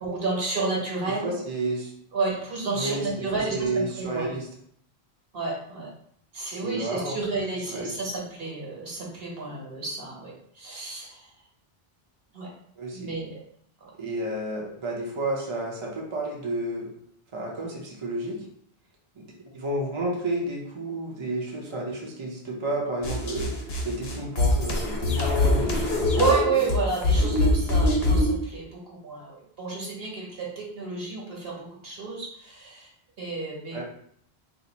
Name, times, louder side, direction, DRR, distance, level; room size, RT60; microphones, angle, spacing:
voice 1, 0.0-1.3 2.1-4.3 5.3-5.9 6.3-11.3 12.3-12.5 12.9-13.4 13.8-13.9 26.2-32.9 33.2-33.8, right 4 dB, 70° right, -4 dB, 1.4 m, -30 dB
voice 2, 1.1-1.9 2.7-4.5 6.5-7.2 7.7-8.0 12.8-13.1 14.0-16.9 17.3-18.4 19.2-19.3 19.5-26.2 26.9-27.2 33.7-33.8, right 1 dB, 35° right, -2 dB, 0.6 m, -31 dB
sound 1, 23.0-28.4, left 2 dB, 75° left, 1.0 m, -23 dB
2.8 x 2.5 x 3.9 m, 0.66 s
omnidirectional pair, 1.0 m